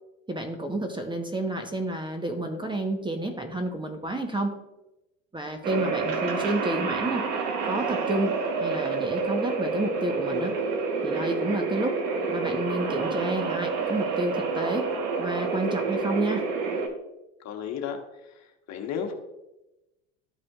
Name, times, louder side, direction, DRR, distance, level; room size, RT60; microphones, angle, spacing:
voice 1, 0.3-4.5 5.3-7.2 7.6-8.3 8.6-10.5 11.0-12.0 12.3-14.9 15.2-16.4, right 1 dB, 15° right, 5 dB, 1.0 m, -30 dB
sound 1, 5.6-16.9, right 4 dB, 60° right, 1.3 m, -28 dB
voice 2, 5.7-6.2 17.4-18.0 18.4-19.1, left 8 dB, 50° left, 4 dB, 1.3 m, -34 dB
13.0 x 4.9 x 2.4 m, 0.96 s
hypercardioid pair, 85°, 35 cm